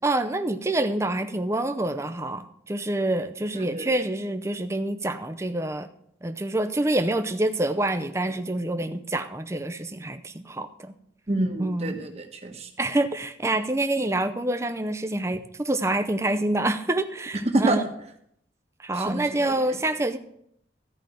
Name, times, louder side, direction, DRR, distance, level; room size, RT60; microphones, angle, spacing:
voice 1, 0.0-5.9 6.2-10.9 11.6-12.0 12.8-17.9 18.8-20.2, right 1 dB, 15° right, 7 dB, 0.6 m, -27 dB
voice 2, 11.3-12.7 17.5-17.8 18.9-19.6, right 2 dB, 35° right, 4 dB, 1.3 m, -27 dB
14.0 x 5.2 x 7.8 m, 0.72 s
head